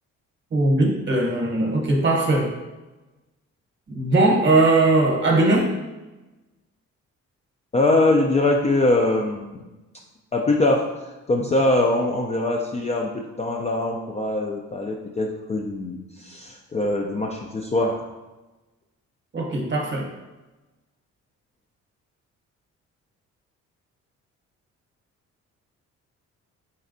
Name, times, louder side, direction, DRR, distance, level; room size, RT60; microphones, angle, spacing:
voice 1, 0.5-2.5 3.9-5.7 19.3-20.1, right 2 dB, 40° right, 0 dB, 0.9 m, -19 dB
voice 2, 7.7-9.7 10.3-10.9 11.3-18.0, left 2 dB, 25° left, 1 dB, 0.3 m, -22 dB
4.2 x 3.3 x 2.5 m, 1.1 s
cardioid pair, 90°, 30 cm